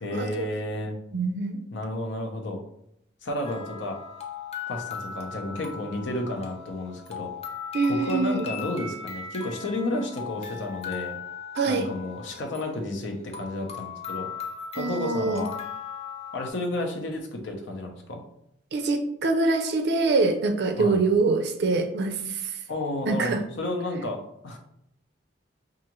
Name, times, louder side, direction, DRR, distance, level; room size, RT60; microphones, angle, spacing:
voice 1, 0.0-1.0 1.7-2.6 3.2-4.0 4.7-7.3 7.9-11.2 11.7-14.3 14.8-15.5 16.3-18.2 20.8-21.0 22.7-24.6, left 1 dB, 75° left, 3 dB, 0.7 m, -31 dB
voice 2, 1.1-1.6 7.7-8.5 11.6-11.9 14.8-15.4 18.7-22.4 23.1-23.4, right 3 dB, 60° right, 6 dB, 0.4 m, -24 dB
sound 1, 3.4-16.5, left 6 dB, 35° left, 0.6 m, -38 dB
4.7 x 2.5 x 3.0 m, 0.77 s
head